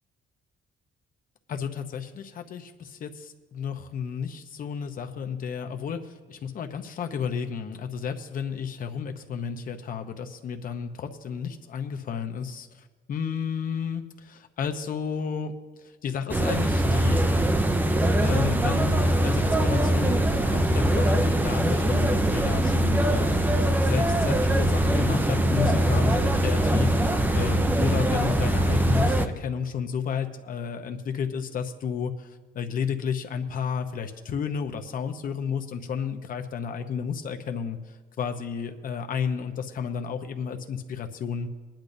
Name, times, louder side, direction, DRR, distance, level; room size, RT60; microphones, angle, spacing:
voice 1, 1.5-12.7 13.1-15.5 16.0-17.2 18.2-20.2 20.4-32.3 32.5-37.8 38.2-41.5, left 7 dB, 45° left, 6 dB, 0.8 m, -32 dB
sound 1, 16.3-29.3, right 1 dB, 10° right, 0.5 m, -22 dB
21.0 x 10.5 x 2.7 m, 1.3 s
cardioid pair, 165°, 19 cm